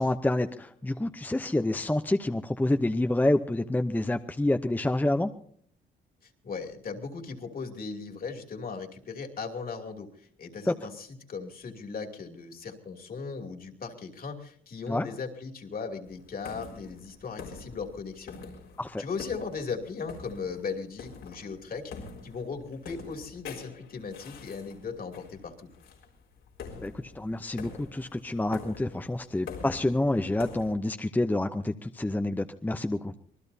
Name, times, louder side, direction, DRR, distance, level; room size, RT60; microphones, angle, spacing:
voice 1, 0.0-5.3 10.7-10.8 14.9-15.1 18.8-19.0 26.8-33.1, left 1 dB, 10° left, 7 dB, 0.7 m, -28 dB
voice 2, 6.2-18.4 19.0-21.9 22.2-25.7, left 5 dB, 50° left, 3 dB, 2.8 m, -38 dB
sound 1, 16.0-30.7, left 5 dB, 85° left, 4.2 m, -46 dB
26.0 x 19.5 x 2.8 m, 0.62 s
cardioid pair, 90°, 20 cm